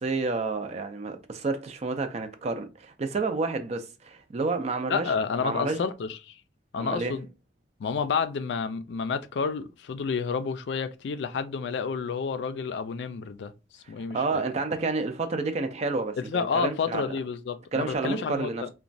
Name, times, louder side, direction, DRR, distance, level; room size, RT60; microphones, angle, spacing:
voice 1, 0.0-5.1 5.4-5.8 6.8-7.2 14.1-17.2 17.7-18.7, right 3 dB, 40° right, 0.4 m, -30 dB
voice 2, 4.9-6.4 6.7-7.3 7.8-13.5 13.9-14.4 16.2-18.7, left 5 dB, 75° left, 0.4 m, -30 dB
3.0 x 2.2 x 2.5 m
head